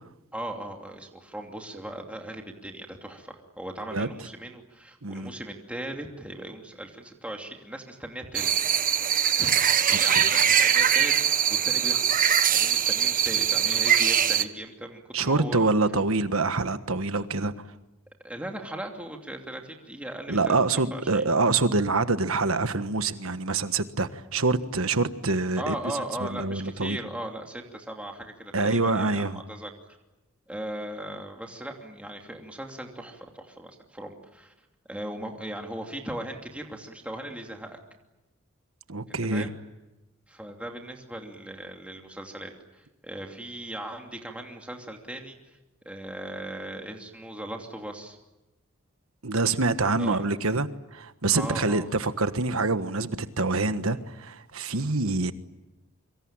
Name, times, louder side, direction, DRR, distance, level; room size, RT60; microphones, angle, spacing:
voice 1, 0.3-8.5 9.4-9.6 10.0-15.7 18.2-20.6 20.9-21.2 25.6-29.7 30.5-34.5 34.9-37.8 39.1-39.5 40.3-45.6 45.8-48.2 50.0-50.4 51.3-51.9 54.7-54.8, right 1 dB, 5° right, 2.8 m, -38 dB
voice 2, 5.0-5.3 9.9-10.3 15.1-17.5 20.3-25.8 26.2-27.0 28.5-29.4 38.9-39.5 49.2-55.3, right 3 dB, 70° right, 1.5 m, -26 dB
sound 1, 8.3-14.4, right 9 dB, 40° right, 1.2 m, -22 dB
26.0 x 25.0 x 8.9 m
head